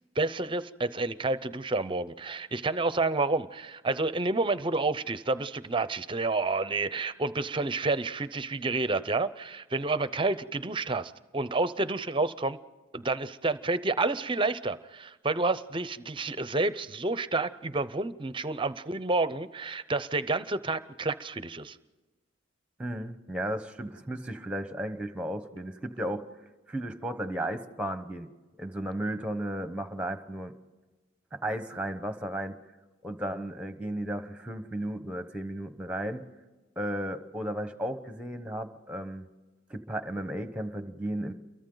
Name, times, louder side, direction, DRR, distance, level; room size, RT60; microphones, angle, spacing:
voice 1, 0.2-12.6 12.9-21.8, right 3 dB, 25° right, 14 dB, 0.6 m, -29 dB
voice 2, 22.8-26.2 26.7-28.3 28.6-30.5 31.3-32.6 33.0-36.2 36.8-39.3 39.7-41.3, right 1 dB, 5° right, 9 dB, 1.0 m, -34 dB
29.0 x 23.0 x 3.9 m, 1.3 s
head